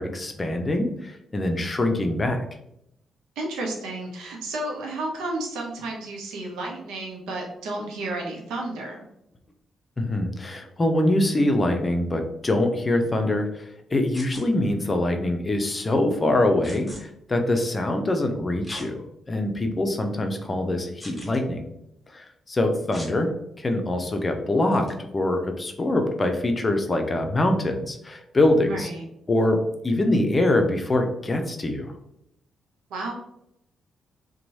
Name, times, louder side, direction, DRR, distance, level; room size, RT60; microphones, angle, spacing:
voice 1, 0.0-2.4 10.0-19.0 19.3-21.7 22.1-23.3 23.6-24.9 25.1-28.9 29.3-29.6 29.8-31.9, left 1 dB, 35° left, 5 dB, 0.5 m, -24 dB
voice 2, 3.4-9.0 28.7-29.0 32.9-33.1, right 2 dB, 75° right, -1 dB, 0.6 m, -32 dB
sound 1, 14.1-14.4 16.6-17.0 18.6-18.9 19.5-19.6 21.0-21.4 22.9-23.1 24.7-24.9, left 1 dB, 15° left, 1.3 m, -41 dB
2.9 x 2.2 x 2.7 m, 0.79 s
hypercardioid pair, 45°, 0 cm